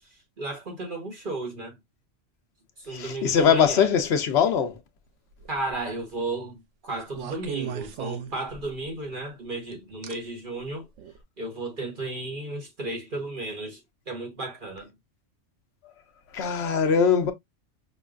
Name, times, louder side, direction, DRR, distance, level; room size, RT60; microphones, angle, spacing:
voice 1, 0.4-1.7 2.8-3.9 5.5-10.9 11.4-13.8 14.1-14.9, right 2 dB, 45° right, 1.2 m, -34 dB
voice 2, 2.9-4.7 16.3-17.3, left 7 dB, 65° left, 1.0 m, -21 dB
sound 1, 5.3-5.8 7.1-8.9 10.0-10.1 11.0-11.2, right 9 dB, 85° right, 1.0 m, -36 dB
5.4 x 2.2 x 2.4 m
omnidirectional pair, 1.2 m